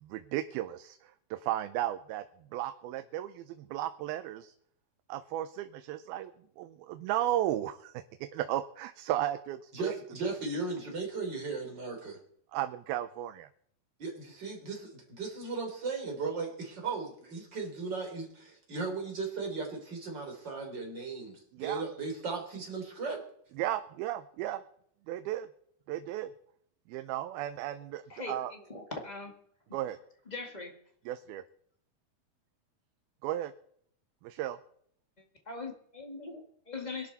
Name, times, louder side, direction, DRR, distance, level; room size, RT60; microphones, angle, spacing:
voice 1, 0.0-2.3 2.5-4.5 5.1-9.9 10.2-10.3 12.5-13.5 21.5-21.8 23.6-24.6 25.1-25.5 25.9-26.3 26.9-28.5 29.7-30.0 31.1-31.4 33.2-33.5 34.2-34.6, right 13 dB, 85° right, 9 dB, 2.6 m, -35 dB
voice 2, 9.7-12.2 14.0-23.2, right 4 dB, 30° right, 2 dB, 3.8 m, -36 dB
voice 3, 28.1-29.4 30.2-30.8 35.2-37.1, left 3 dB, 25° left, 2 dB, 0.9 m, -41 dB
22.5 x 12.0 x 4.1 m, 0.65 s
omnidirectional pair, 4.3 m